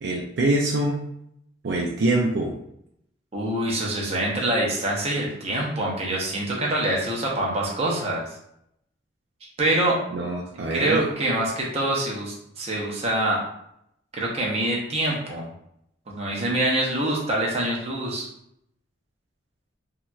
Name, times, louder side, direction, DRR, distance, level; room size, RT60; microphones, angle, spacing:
voice 1, 0.0-1.0 1.6-2.5 10.1-11.0, right 2 dB, 60° right, -1 dB, 0.4 m, -24 dB
voice 2, 3.3-8.2 9.6-10.0 10.7-13.4 14.1-15.5 16.1-18.3, right 1 dB, 35° right, -3 dB, 0.7 m, -25 dB
3.1 x 2.8 x 2.3 m, 0.75 s
head